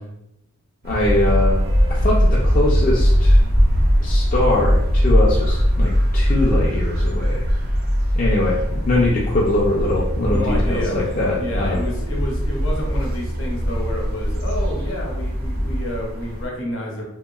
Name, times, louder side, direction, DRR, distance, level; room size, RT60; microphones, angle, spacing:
voice 1, 0.8-1.6 1.9-3.4 4.0-7.5 8.1-11.8, left 2 dB, 35° left, -5 dB, 0.3 m, -22 dB
sound 1, 0.8-16.5, equal, 45° right, 0.5 m, -26 dB
sound 2, 1.0-16.0, equal, 80° right, 1.1 m, -21 dB
voice 2, 10.3-17.0, equal, 60° left, -1 dB, 0.7 m, -30 dB
2.8 x 2.5 x 2.3 m, 0.83 s
head